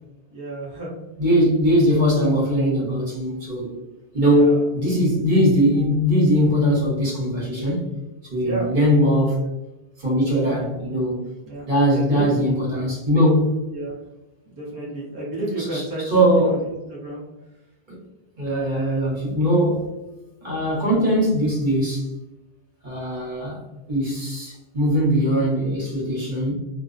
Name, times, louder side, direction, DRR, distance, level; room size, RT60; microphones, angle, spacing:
voice 1, 0.3-1.0 4.3-4.6 8.4-8.7 10.5-10.7 11.4-12.4 13.7-14.0 14.5-17.2, right 1 dB, 25° right, -6 dB, 0.6 m, -31 dB
voice 2, 1.2-3.8 4.1-7.9 8.3-9.5 10.0-11.2 11.7-13.7 15.7-15.8 16.1-16.6 17.9-18.0 18.4-19.9 20.4-22.1 22.8-23.6 23.9-26.5, equal, 50° right, -6 dB, 1.1 m, -20 dB
2.5 x 2.0 x 2.4 m, 1.0 s
omnidirectional pair, 1.0 m